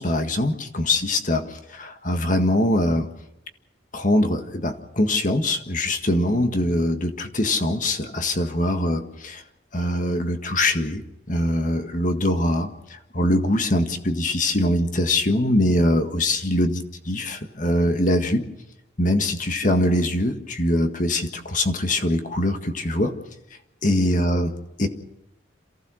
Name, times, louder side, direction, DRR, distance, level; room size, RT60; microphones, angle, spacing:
voice 1, 0.0-3.1 3.9-9.4 9.7-11.0 11.3-18.4 19.0-23.1 23.8-24.5 24.8-24.9, left 1 dB, 40° left, 6 dB, 1.8 m, -23 dB
28.0 x 15.5 x 6.4 m, 0.87 s
head